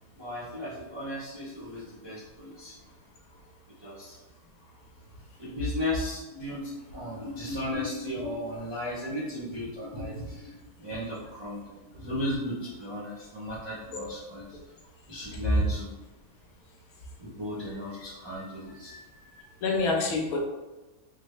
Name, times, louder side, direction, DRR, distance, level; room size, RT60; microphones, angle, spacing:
voice 1, 0.1-2.7 3.8-4.2 5.4-14.6 15.1-15.9 17.2-18.9, left 1 dB, 40° right, -8 dB, 0.4 m, -35 dB
voice 2, 13.9-14.2 15.5-15.6 18.9-19.0 19.6-20.4, left 2 dB, 85° left, -1 dB, 1.2 m, -27 dB
3.3 x 2.1 x 3.1 m, 1.1 s
omnidirectional pair, 1.5 m